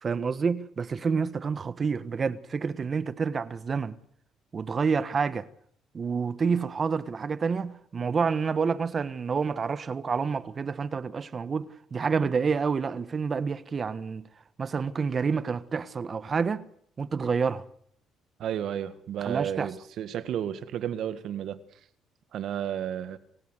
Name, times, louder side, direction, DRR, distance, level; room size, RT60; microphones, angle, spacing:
voice 1, 0.0-4.0 4.5-5.5 5.9-14.3 14.6-16.6 17.0-17.6 19.2-19.7, right 5 dB, 35° right, 1.3 m, -28 dB
voice 2, 18.4-21.6 22.3-23.2, right 10 dB, 65° right, 1.8 m, -32 dB
28.0 x 16.5 x 8.1 m
cardioid pair, 110°, 0 cm